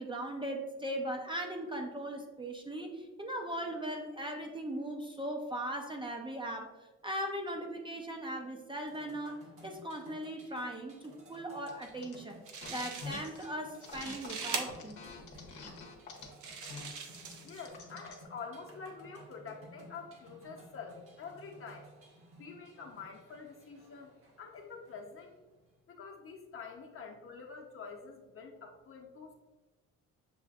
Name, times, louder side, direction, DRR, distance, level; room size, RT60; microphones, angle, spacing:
voice 1, 0.0-6.7 7.0-12.4 12.7-15.0, right 1 dB, 15° right, 1 dB, 0.5 m, -39 dB
sound 1, 8.8-25.7, right 1 dB, 45° right, 1.0 m, -57 dB
sound 2, 11.7-12.1 12.5-13.5 13.8-18.2, left 4 dB, 85° left, 0.8 m, -46 dB
sound 3, 12.1-12.2 12.5-13.4 13.7-14.6 15.4-15.5 16.2-17.7, right 6 dB, 70° right, 0.7 m, -41 dB
voice 2, 17.4-21.9 22.4-25.4 25.9-29.3, left 5 dB, 45° left, 1 dB, 0.8 m, -47 dB
6.8 x 2.4 x 2.3 m, 1.2 s
cardioid pair, 90°, 30 cm